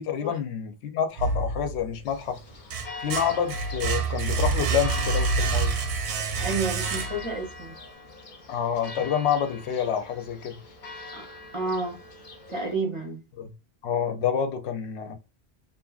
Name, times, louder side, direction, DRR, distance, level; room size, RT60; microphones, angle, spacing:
voice 1, 0.0-2.4 3.0-5.8 8.5-10.6 13.4-13.5 13.8-15.2, left 8 dB, 85° left, 0.8 m, -28 dB
sound 1, 1.2-2.0 2.4-7.5, right 4 dB, 85° right, 0.9 m, -27 dB
Church bell, 2.1-12.7, left 3 dB, 50° left, 0.7 m, -42 dB
voice 2, 6.4-7.7 11.1-11.3 11.5-12.0 12.5-13.2, right 3 dB, 35° right, 0.5 m, -30 dB
2.7 x 2.5 x 2.3 m
omnidirectional pair, 1.1 m